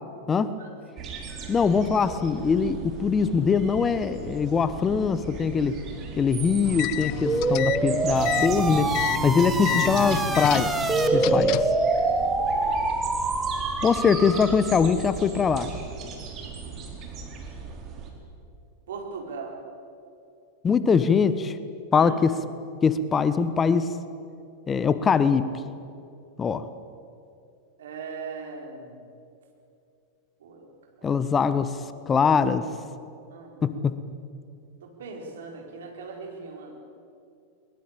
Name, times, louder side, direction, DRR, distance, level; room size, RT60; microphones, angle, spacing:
sound 1, 1.0-18.1, right 5 dB, 35° right, 4.6 m, -37 dB
voice 1, 1.5-5.8 6.2-8.9 9.2-10.7 11.1-11.6 13.8-15.7 20.6-21.6 21.9-22.3 22.8-24.0 24.7-25.5 26.4-26.7 31.0-31.8 32.1-32.7 33.6-34.0, left 6 dB, 20° left, 13 dB, 1.1 m, -22 dB
sound 2, 6.6-11.8, left 15 dB, 45° left, 0.8 m, -31 dB
sound 3, 7.3-14.7, right 3 dB, 10° right, 1.8 m, -25 dB
voice 2, 18.9-19.5 21.9-22.1 27.8-29.0 30.4-30.7 31.0-31.1 33.3-33.8 34.8-36.7, right 4 dB, 65° right, 2 dB, 4.7 m, -39 dB
21.5 x 21.5 x 8.6 m, 2.6 s
figure-of-eight pair, 90°, 0 cm